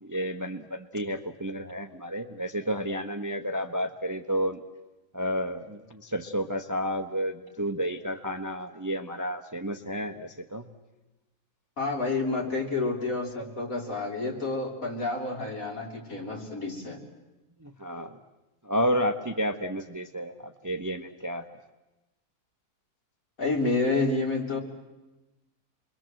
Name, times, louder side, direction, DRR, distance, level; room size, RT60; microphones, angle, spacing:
voice 1, 0.0-4.6 5.1-10.6 17.6-18.1 18.6-20.3 20.6-21.5, equal, 15° right, 6 dB, 0.9 m, -31 dB
voice 2, 11.8-17.0 23.4-24.6, left 3 dB, 60° left, 1 dB, 4.1 m, -29 dB
29.0 x 22.5 x 7.7 m, 1.1 s
omnidirectional pair, 1.7 m